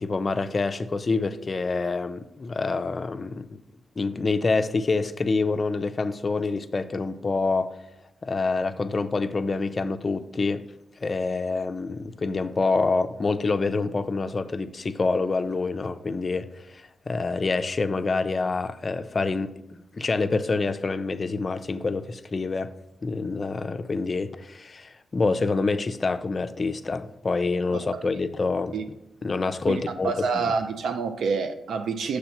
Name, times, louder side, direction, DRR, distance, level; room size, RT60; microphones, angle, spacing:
voice 1, 0.0-3.6 4.0-7.8 8.2-10.6 11.0-19.5 19.9-22.7 23.0-28.8 29.2-30.3, left 3 dB, 45° left, 0.4 m, -26 dB
voice 2, 29.7-32.2, right 5 dB, 75° right, 0.4 m, -27 dB
6.8 x 3.2 x 5.7 m
hypercardioid pair, 40°, 0 cm